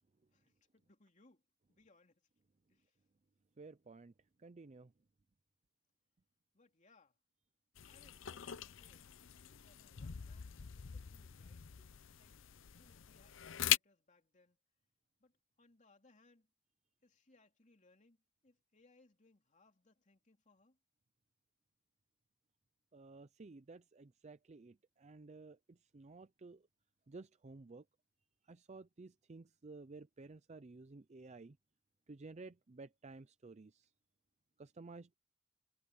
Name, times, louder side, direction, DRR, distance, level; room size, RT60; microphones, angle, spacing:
voice 1, 0.3-1.4 1.7-2.3 2.7-3.0 6.5-7.2 7.8-9.1 9.4-11.6 12.2-12.4 12.8-14.6 15.2-16.5 17.0-20.8, left 2 dB, 35° left, 3.0 m, -70 dB
voice 2, 3.6-4.1 4.4-4.9 22.9-26.6 27.1-27.8 28.5-31.6 32.1-33.9 34.6-35.1, right 3 dB, 35° right, 0.5 m, -54 dB
sound 1, 7.8-13.8, left 12 dB, 65° left, 0.6 m, -41 dB
head